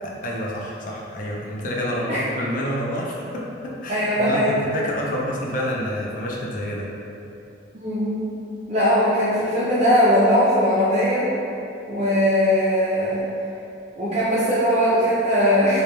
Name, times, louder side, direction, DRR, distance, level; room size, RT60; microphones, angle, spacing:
voice 1, 0.0-6.9, equal, 45° left, -3 dB, 0.3 m, -28 dB
voice 2, 3.9-4.5 7.7-8.2 8.7-11.3 11.9-13.2 14.0-15.8, equal, 35° right, -11 dB, 0.3 m, -20 dB
2.2 x 2.1 x 2.9 m, 2.7 s
head